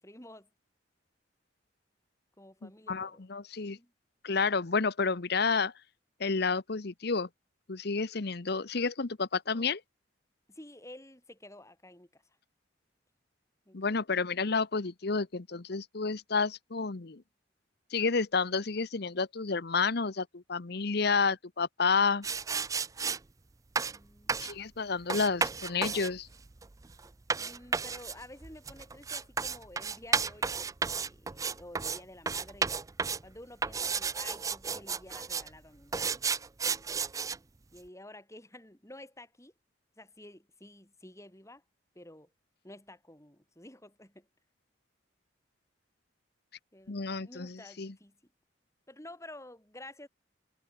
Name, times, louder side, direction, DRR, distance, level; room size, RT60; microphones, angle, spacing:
voice 1, 0.0-0.5 2.4-3.3 3.6-3.9 10.5-12.2 13.7-14.0 23.9-24.4 27.4-32.7 33.2-36.1 37.7-39.5 40.0-41.6 42.0-42.3 42.6-44.3 46.7-48.2 48.9-50.1, left 1 dB, 15° left, 7.2 m, -51 dB
voice 2, 2.6-3.8 4.2-5.7 6.2-7.3 7.7-9.8 13.7-17.2 17.9-22.3 24.4-26.3 46.9-47.9, left 4 dB, 60° left, 0.9 m, -30 dB
sound 1, 22.2-23.2 23.8-24.0 24.3-24.6 25.1-32.0 32.3-33.3 33.6-35.5 35.9-37.4, right 5 dB, 20° right, 0.4 m, -32 dB
head